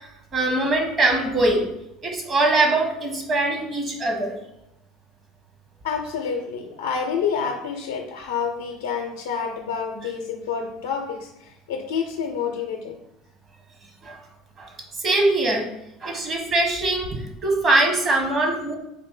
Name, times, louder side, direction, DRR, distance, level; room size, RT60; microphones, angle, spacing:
voice 1, 0.0-1.7 2.0-4.3 14.0-14.2 14.6-14.7 15.0-15.6 16.0-18.8, right 2 dB, 40° right, 2 dB, 1.2 m, -22 dB
voice 2, 5.8-13.0, left 6 dB, 85° left, 2 dB, 0.5 m, -28 dB
3.8 x 2.6 x 3.7 m, 0.86 s
hypercardioid pair, 75°, 0 cm